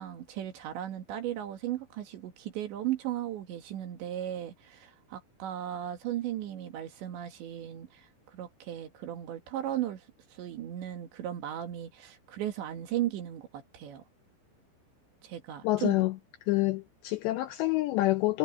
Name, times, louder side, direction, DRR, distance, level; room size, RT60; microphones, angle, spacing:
voice 1, 0.0-10.1 10.3-14.0 15.2-16.0, right 12 dB, 65° right, 4.2 m, -36 dB
voice 2, 15.6-16.1 16.5-18.4, left 18 dB, 80° left, 2.6 m, -27 dB
omnidirectional pair, 5.7 m